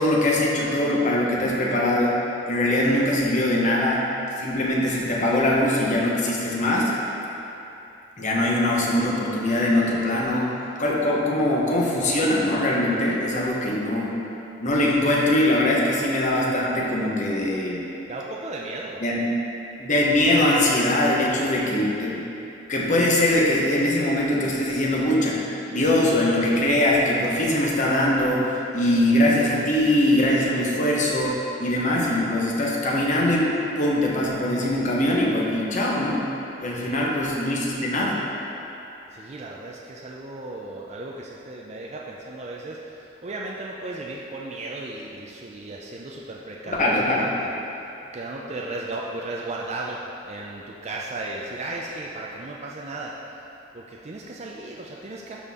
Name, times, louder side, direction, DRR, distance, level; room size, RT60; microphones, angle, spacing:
voice 1, 0.0-2.2 2.5-4.1 4.4-7.0 8.2-10.5 10.8-14.1 14.6-17.8 19.0-19.2 19.8-22.3 22.7-33.5 33.8-36.2 36.6-38.2 46.7-47.3, left 1 dB, 40° left, -4 dB, 1.1 m, -22 dB
voice 2, 18.1-19.0 21.3-21.5 36.8-37.3 39.1-47.6 48.1-53.5 53.7-55.4, right 2 dB, 35° right, -3 dB, 0.5 m, -35 dB
12.0 x 4.2 x 3.6 m, 2.9 s
head